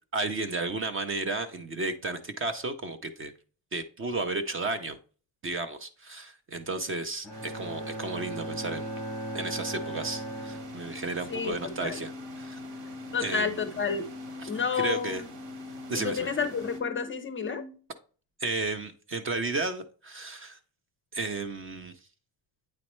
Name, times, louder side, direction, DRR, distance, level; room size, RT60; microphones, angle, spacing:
voice 1, 0.1-3.3 3.7-5.0 5.4-8.9 9.3-12.6 13.2-13.6 14.4-14.5 14.8-15.2 15.9-16.3 18.4-20.6 21.1-21.9, right 3 dB, 30° right, 0.5 m, -33 dB
Bowed string instrument, 7.2-11.3, right 1 dB, 5° left, 0.9 m, -38 dB
sound 1, 7.3-16.8, right 4 dB, 70° right, 1.6 m, -48 dB
sound 2, 8.1-17.7, left 3 dB, 85° right, 2.0 m, -43 dB
voice 2, 11.3-12.0 13.1-14.1 14.5-15.3 15.9-17.6, left 6 dB, 30° left, 0.5 m, -30 dB
8.7 x 4.1 x 3.0 m
cardioid pair, 150°, 45 cm